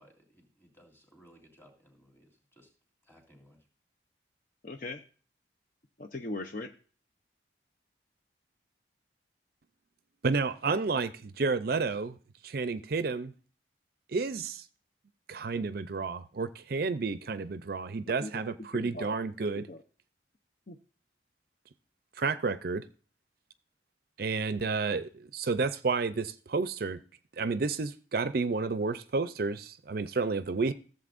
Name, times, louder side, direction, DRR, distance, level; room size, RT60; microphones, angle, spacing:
voice 1, 0.0-2.2 2.5-2.7 3.0-3.7, equal, 15° left, 3.0 m, -60 dB
voice 2, 4.6-5.0 6.0-6.7 18.2-19.8 20.7-20.8, left 2 dB, 45° left, 0.7 m, -40 dB
voice 3, 10.2-12.2 12.4-13.3 14.1-14.6 15.3-19.7 22.2-22.8 24.2-27.0 27.4-30.7, right 4 dB, 50° right, 0.5 m, -31 dB
14.5 x 7.7 x 2.5 m
head